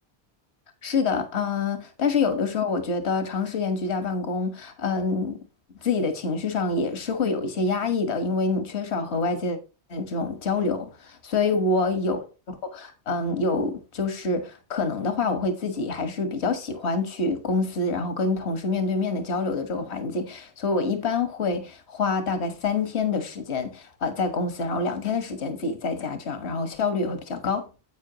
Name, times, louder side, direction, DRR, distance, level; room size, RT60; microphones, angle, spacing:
voice 1, 0.8-5.4 5.8-9.6 9.9-27.6, left 3 dB, 75° left, 1.7 m, -26 dB
10.5 x 8.4 x 2.9 m
omnidirectional pair, 1.1 m